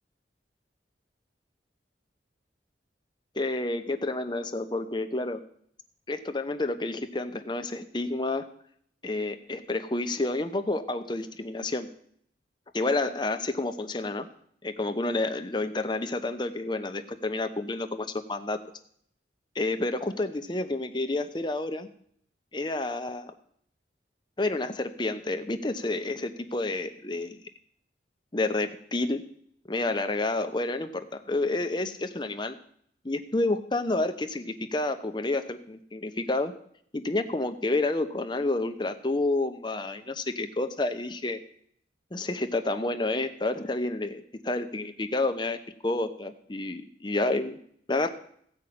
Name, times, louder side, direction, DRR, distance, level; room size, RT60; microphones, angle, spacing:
voice 1, 3.3-5.4 6.1-8.5 9.0-11.9 12.7-14.3 14.6-18.6 19.5-21.9 22.5-23.3 24.4-27.4 28.3-29.2 29.7-32.5 33.0-36.5 36.9-41.4 42.1-47.6 47.9-48.1, left 2 dB, 25° left, 8 dB, 0.8 m, -29 dB
15.5 x 5.5 x 8.6 m, 0.67 s
head